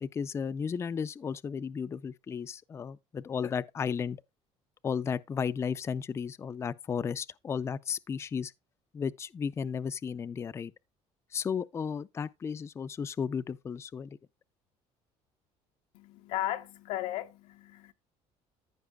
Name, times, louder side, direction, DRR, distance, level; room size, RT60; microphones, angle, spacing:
voice 1, 0.0-4.2 4.8-8.5 8.9-10.7 11.3-14.2, left 6 dB, 20° left, 0.4 m, -34 dB
voice 2, 15.9-17.9, left 13 dB, 85° left, 0.8 m, -36 dB
14.5 x 5.5 x 2.2 m
cardioid pair, 130°, 12 cm